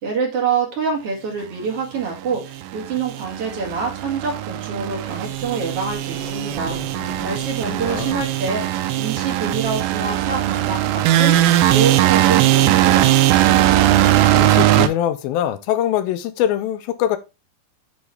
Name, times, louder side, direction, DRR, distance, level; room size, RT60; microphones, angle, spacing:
voice 1, 0.0-6.8 7.2-13.2, right 5 dB, 45° right, 2.7 m, -26 dB
sound 1, 2.5-14.9, right 13 dB, 80° right, 2.3 m, -19 dB
sound 2, 5.1-11.6, right 2 dB, 60° right, 3.8 m, -39 dB
voice 2, 7.8-8.2 14.3-17.2, left 11 dB, 80° left, 2.4 m, -23 dB
9.5 x 3.7 x 3.3 m
omnidirectional pair, 4.3 m